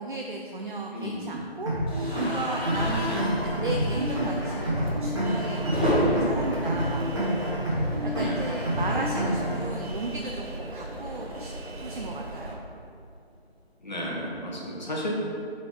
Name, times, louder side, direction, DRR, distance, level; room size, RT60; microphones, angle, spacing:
voice 1, 0.0-11.5 11.8-12.6, right 2 dB, 55° right, 1 dB, 0.5 m, -35 dB
voice 2, 0.9-1.4 3.1-3.3 8.2-8.4 8.7-8.9 13.8-15.1, equal, 45° left, -4 dB, 1.3 m, -34 dB
sound 1, 1.7-9.7, right 1 dB, 30° right, 1.4 m, -28 dB
sound 2, 1.9-7.9 8.2-8.4 8.7-8.8 10.0-12.4, equal, 10° right, 1.1 m, -32 dB
sound 3, 2.7-12.6, right 1 dB, 75° right, 1.2 m, -38 dB
8.3 x 4.1 x 3.7 m, 2.4 s
figure-of-eight pair, 165°, 31 cm